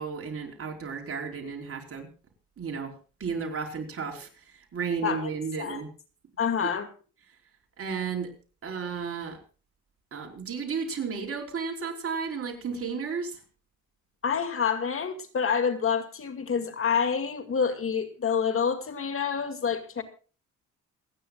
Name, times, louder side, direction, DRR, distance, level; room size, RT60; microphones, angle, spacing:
voice 1, 0.0-2.1 2.6-2.9 3.2-4.3 4.7-5.9 6.6-6.7 7.8-8.3 8.6-9.4 10.1-13.4, right 5 dB, 45° right, 2 dB, 4.9 m, -33 dB
voice 2, 6.4-6.9 14.2-20.0, left 6 dB, 45° left, 8 dB, 2.3 m, -27 dB
27.5 x 10.0 x 2.4 m, 0.36 s
cardioid pair, 90°, 30 cm